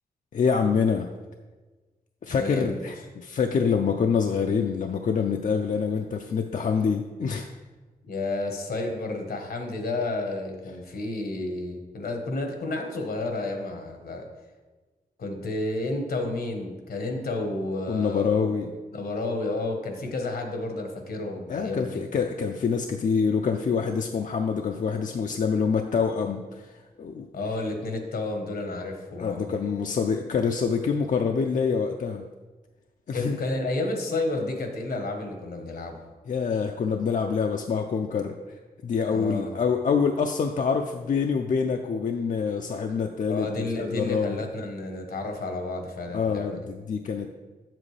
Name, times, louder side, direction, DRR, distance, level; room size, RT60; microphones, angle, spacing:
voice 1, 0.3-1.1 2.2-7.5 17.9-18.7 21.5-27.3 29.2-32.3 33.1-33.4 36.3-38.3 38.8-44.4 46.1-47.3, left 6 dB, 55° left, 4 dB, 0.4 m, -26 dB
voice 2, 2.3-2.9 8.0-14.3 15.2-18.5 18.9-22.0 27.3-29.5 33.1-36.1 39.1-39.5 43.3-46.6, left 2 dB, 80° left, 4 dB, 1.2 m, -31 dB
7.5 x 7.3 x 3.3 m, 1.3 s
wide cardioid pair, 95°, 16 cm